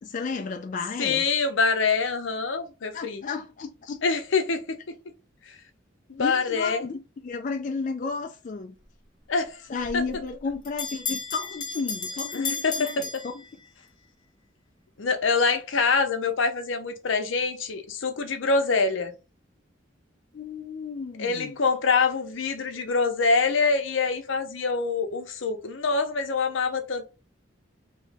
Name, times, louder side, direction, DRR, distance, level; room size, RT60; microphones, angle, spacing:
voice 1, 0.0-1.3 2.9-4.0 6.2-8.7 9.7-13.4 20.3-21.6, left 4 dB, 40° left, 0.3 m, -33 dB
voice 2, 1.0-3.2 4.0-5.0 5.5-5.6 6.1-6.8 9.3-9.6 9.9-10.0 12.3-12.7 15.0-19.1 21.2-27.0, left 4 dB, 80° left, 0.7 m, -25 dB
Bell, 9.8-13.9, left 5 dB, 25° left, 0.9 m, -34 dB
3.0 x 2.7 x 3.4 m
head